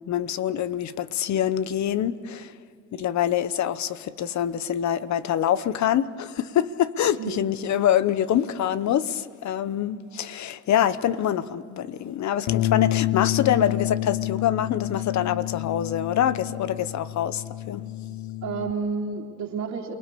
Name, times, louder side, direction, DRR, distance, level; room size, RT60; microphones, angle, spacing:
voice 1, 0.1-2.5 2.9-17.9, left 10 dB, 65° left, 1.0 m, -25 dB
Bass guitar, 12.5-18.7, left 15 dB, 90° left, 0.6 m, -29 dB
voice 2, 18.4-19.9, right 5 dB, 75° right, 3.0 m, -30 dB
28.5 x 20.0 x 6.9 m
cardioid pair, 90°, 30 cm